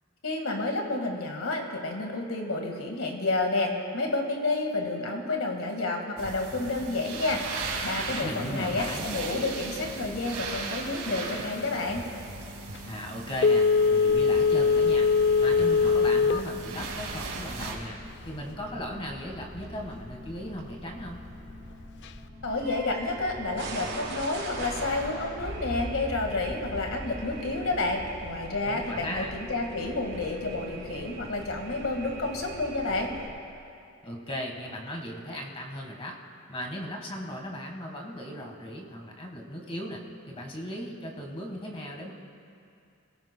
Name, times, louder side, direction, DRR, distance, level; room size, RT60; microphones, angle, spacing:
voice 1, 0.2-12.0 22.4-33.1, left 2 dB, 70° left, 2 dB, 1.7 m, -30 dB
sound 1, 6.2-17.7, right 3 dB, 80° right, 2.1 m, -37 dB
voice 2, 8.2-9.0 12.8-15.1 15.4-18.0 18.2-21.2 28.6-29.3 34.0-36.2 36.5-42.1, equal, 25° left, 1 dB, 1.5 m, -37 dB
Telephone, 13.4-16.5 16.9-17.0, left 5 dB, 50° left, 0.4 m, -21 dB
sound 2, 14.1-33.3, right 1 dB, 55° right, 3.5 m, -41 dB
24.0 x 16.5 x 2.2 m, 2.5 s
head